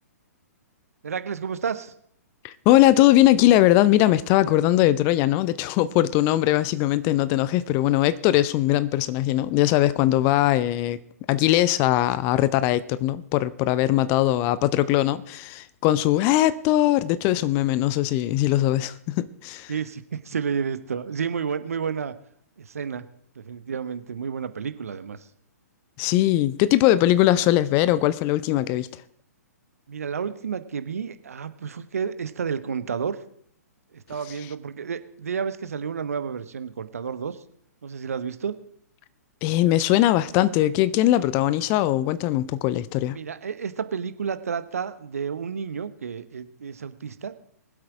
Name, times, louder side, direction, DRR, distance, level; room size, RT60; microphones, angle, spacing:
voice 1, 1.0-1.9 19.7-22.1 22.6-23.1 23.3-25.3 29.9-33.2 33.9-37.4 37.8-38.6 43.1-47.3, right 6 dB, 60° right, 1.0 m, -31 dB
voice 2, 2.4-11.0 11.3-19.7 26.0-28.9 39.4-43.2, left 14 dB, 25° left, 0.5 m, -20 dB
22.0 x 7.9 x 4.8 m
figure-of-eight pair, 120°, 9 cm